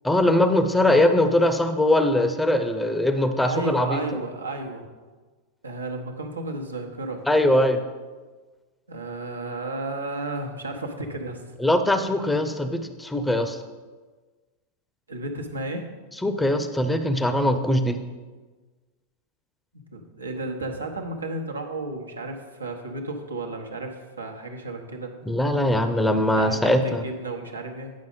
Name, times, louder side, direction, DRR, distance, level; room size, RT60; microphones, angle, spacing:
voice 1, 0.0-4.0 7.3-7.8 11.6-13.6 16.2-18.0 25.3-27.0, left 1 dB, 5° left, 8 dB, 0.6 m, -21 dB
voice 2, 3.2-4.8 5.6-7.2 8.9-11.4 15.1-15.9 19.9-25.1 26.4-27.9, right 2 dB, 80° right, 2 dB, 1.1 m, -33 dB
9.4 x 5.3 x 5.2 m, 1.3 s
figure-of-eight pair, 90°, 0 cm